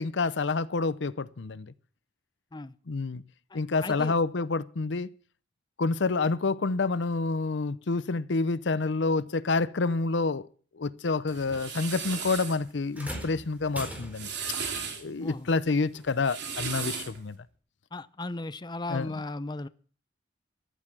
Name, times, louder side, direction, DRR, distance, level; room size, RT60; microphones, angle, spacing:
voice 1, 0.0-1.7 2.9-3.2 3.5-5.1 5.8-10.4 10.7-14.6 15.0-17.4 18.9-19.1, left 3 dB, 70° left, 0.7 m, -28 dB
voice 2, 3.8-4.1 15.2-15.5 17.9-19.7, left 2 dB, 25° left, 0.7 m, -36 dB
sound 1, 11.3-12.6 13.9-15.0 16.1-17.2, right 6 dB, 65° right, 3.7 m, -35 dB
sound 2, 12.9-14.5 15.9-16.1 17.0-17.1, equal, 10° right, 4.4 m, -40 dB
14.5 x 12.0 x 6.1 m
head